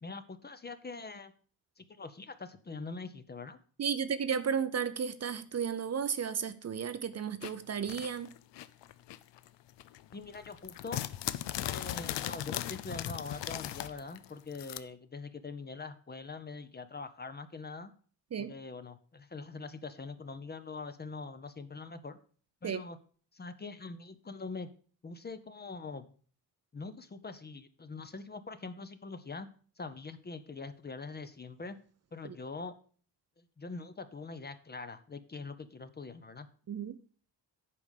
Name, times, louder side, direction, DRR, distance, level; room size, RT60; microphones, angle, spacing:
voice 1, 0.0-1.3 1.8-3.6 10.1-11.0 11.6-17.9 18.4-22.2 22.6-23.0 23.3-24.7 25.0-26.2 26.7-29.5 29.8-31.8 32.1-32.8 33.4-36.5, left 4 dB, 25° left, 0.7 m, -43 dB
voice 2, 3.8-8.3 18.3-18.5 22.6-22.8 32.2-32.3 36.7-37.0, right 7 dB, 35° right, 0.6 m, -33 dB
sound 1, 7.4-9.5 9.8-14.8, left 13 dB, 75° left, 0.6 m, -38 dB
8.6 x 5.1 x 6.5 m
cardioid pair, 120°, 43 cm